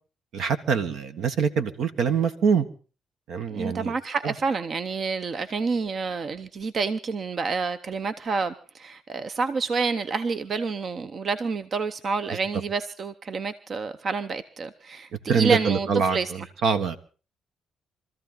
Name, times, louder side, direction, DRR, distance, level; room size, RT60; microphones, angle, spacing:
voice 1, 0.3-2.6 3.3-3.9 15.3-17.0, right 6 dB, 75° right, 1.5 m, -24 dB
voice 2, 3.5-16.5, right 4 dB, 50° right, 0.8 m, -28 dB
24.0 x 14.0 x 4.0 m
cardioid pair, 90°, 0 cm